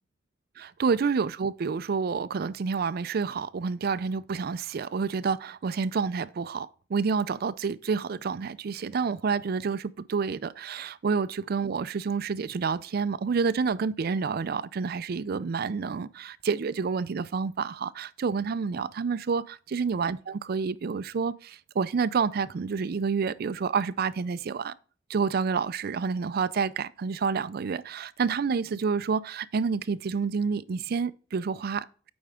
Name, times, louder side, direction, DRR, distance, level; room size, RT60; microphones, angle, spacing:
voice 1, 0.6-24.7 25.1-31.9, right 5 dB, 55° right, 0.4 m, -29 dB
8.6 x 4.4 x 3.5 m
head